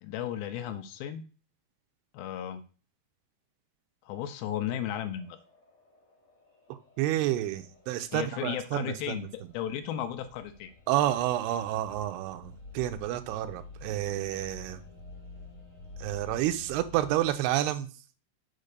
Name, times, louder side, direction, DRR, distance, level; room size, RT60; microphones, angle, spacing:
voice 1, 0.0-1.3 2.1-2.6 4.1-5.4 8.1-10.7, left 10 dB, 80° left, 9 dB, 2.4 m, -35 dB
sound 1, 5.0-17.4, left 3 dB, 35° left, 3.5 m, -50 dB
voice 2, 6.7-9.3 10.9-14.8 16.0-17.9, right 13 dB, 85° right, 11 dB, 2.8 m, -30 dB
6.5 x 5.2 x 6.7 m, 0.37 s
omnidirectional pair, 4.6 m